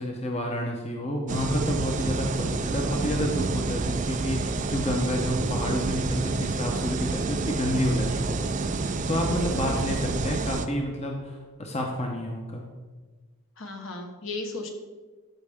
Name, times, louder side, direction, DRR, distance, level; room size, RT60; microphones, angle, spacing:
voice 1, 0.0-12.6, equal, 30° left, 1 dB, 0.9 m, -29 dB
sound 1, 1.3-10.7, right 3 dB, 35° right, 0.4 m, -29 dB
voice 2, 9.7-10.0 13.6-14.7, left 2 dB, 60° left, 3 dB, 1.3 m, -36 dB
13.0 x 5.5 x 3.6 m, 1.3 s
head